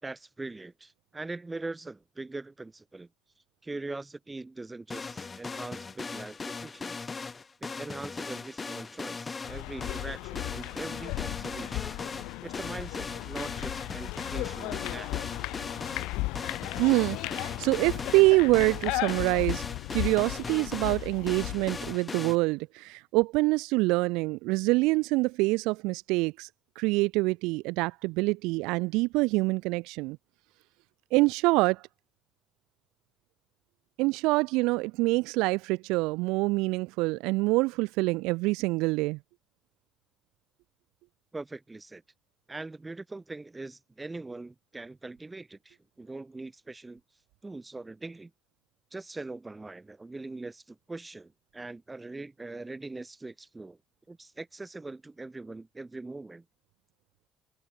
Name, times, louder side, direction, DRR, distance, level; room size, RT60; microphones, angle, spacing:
voice 1, 0.0-3.1 3.6-7.1 7.6-11.9 12.4-15.2 41.3-42.0 42.5-47.0 47.4-48.3 48.9-53.8 54.1-56.4, right 3 dB, 20° right, 4.3 m, -41 dB
sound 1, 4.9-22.4, left 4 dB, 35° left, 0.9 m, -39 dB
sound 2, 9.4-22.0, left 22 dB, 80° left, 0.3 m, -36 dB
voice 2, 16.8-19.6 19.9-26.5 26.8-30.2 31.1-31.8 34.0-39.2, right 23 dB, 85° right, 0.4 m, -26 dB
supercardioid pair, 65°, 0 cm